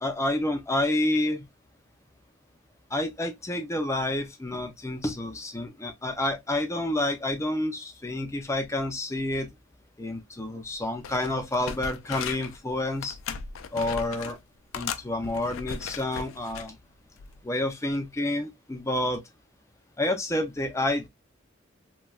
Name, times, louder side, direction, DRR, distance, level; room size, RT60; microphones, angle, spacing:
voice 1, 0.0-1.5 2.9-9.5 10.0-13.2 13.7-14.4 14.7-16.7 17.4-19.2 20.0-21.1, left 1 dB, 15° left, 0.5 m, -29 dB
sound 1, 10.6-10.8 11.0-12.6 13.0-14.4 14.7-16.7 17.2-17.4, left 6 dB, 80° left, 0.4 m, -37 dB
3.1 x 2.2 x 2.3 m
head